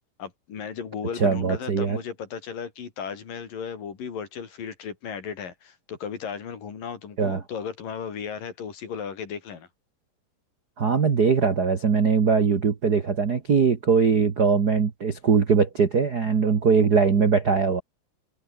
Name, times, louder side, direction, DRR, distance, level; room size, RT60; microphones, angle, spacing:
voice 1, 0.2-9.7, left 7 dB, 55° left, 4.8 m, -35 dB
voice 2, 1.2-2.0 7.2-7.4 10.8-17.8, right 5 dB, 75° right, 0.9 m, -21 dB
omnidirectional pair, 4.7 m